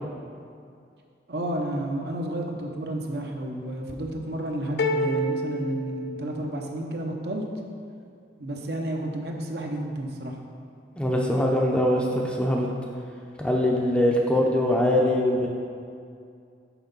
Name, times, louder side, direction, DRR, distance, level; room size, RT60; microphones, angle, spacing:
voice 1, 1.3-7.4 8.4-10.3, right 1 dB, 65° right, 1 dB, 0.7 m, -31 dB
sound 1, 4.8-6.8, equal, 65° left, 0.5 m, -29 dB
voice 2, 11.0-12.7 13.4-15.5, left 1 dB, 5° left, -1 dB, 0.5 m, -22 dB
6.0 x 4.6 x 5.3 m, 2.3 s
head